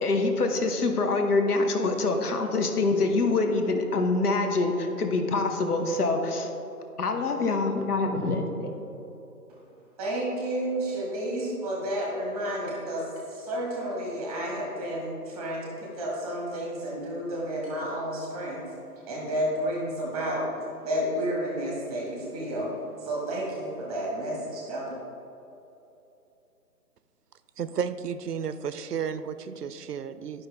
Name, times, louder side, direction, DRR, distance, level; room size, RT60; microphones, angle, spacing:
voice 1, 0.0-6.5 7.0-8.7, left 3 dB, 70° left, 5 dB, 1.2 m, -25 dB
voice 2, 10.0-18.6 19.0-20.5 20.8-22.7 23.0-25.0, right 1 dB, ahead, -3 dB, 1.1 m, -31 dB
voice 3, 27.6-30.5, right 7 dB, 75° right, 12 dB, 0.7 m, -32 dB
12.0 x 5.6 x 3.4 m, 2.9 s
hypercardioid pair, 155°, 48 cm